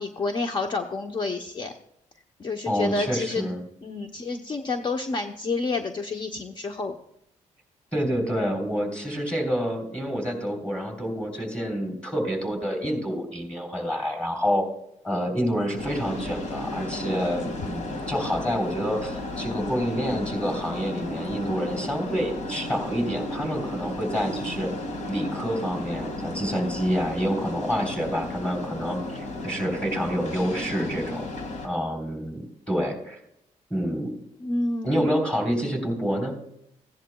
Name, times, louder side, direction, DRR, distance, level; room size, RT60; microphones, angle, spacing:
voice 1, 0.0-1.7 2.4-3.5 3.8-7.0 34.4-35.1, left 3 dB, 35° left, 5 dB, 0.8 m, -29 dB
voice 2, 2.7-3.6 7.9-14.7 15.0-24.7 25.1-31.3 31.6-33.2 33.7-34.1 34.8-36.3, equal, 10° left, 2 dB, 3.4 m, -28 dB
sound 1, 15.8-31.7, left 1 dB, 65° left, 2.0 m, -34 dB
15.5 x 10.5 x 2.3 m, 0.77 s
cardioid pair, 100°, 13 cm